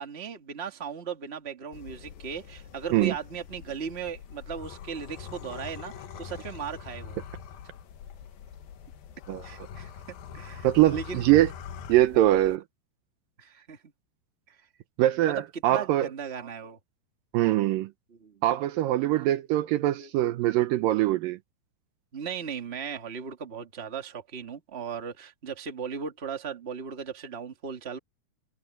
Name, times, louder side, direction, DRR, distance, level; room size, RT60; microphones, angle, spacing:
voice 1, 0.0-7.2 9.4-9.9 10.3-11.3 13.4-13.8 14.5-14.6 15.2-16.8 18.2-18.4 19.2-19.3 19.8-20.3 22.1-28.0, right 6 dB, 35° right, 1.0 m, -37 dB
sound 1, 1.7-12.6, left 7 dB, 65° left, 3.1 m, -43 dB
voice 2, 10.6-11.5 11.9-12.6 15.0-16.1 17.3-17.9 18.4-21.4, right 15 dB, 80° right, 2.1 m, -23 dB
omnidirectional pair, 4.7 m